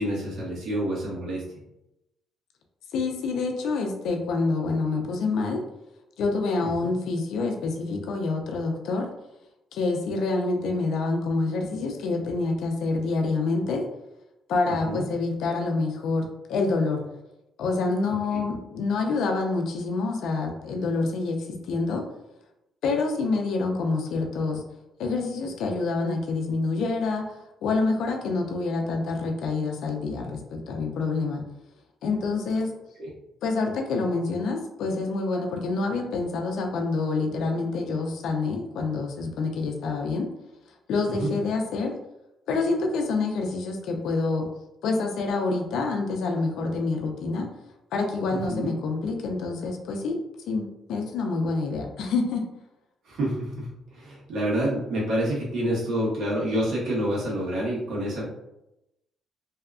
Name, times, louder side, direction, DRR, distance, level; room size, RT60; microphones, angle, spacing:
voice 1, 0.0-1.4 6.6-6.7 14.8-15.0 18.3-18.4 33.0-33.1 41.1-41.3 48.3-48.7 53.0-58.2, right 1 dB, 75° right, -5 dB, 1.1 m, -28 dB
voice 2, 2.9-5.6 6.2-9.1 9.7-13.8 14.5-17.0 17.6-22.0 22.8-24.6 25.0-31.4 32.0-32.7 33.4-40.3 40.9-41.9 42.5-44.5 44.8-47.5 47.9-50.2 50.5-52.4, left 3 dB, 80° left, 3 dB, 0.4 m, -27 dB
2.7 x 2.3 x 2.3 m, 0.89 s
cardioid pair, 90°, 0 cm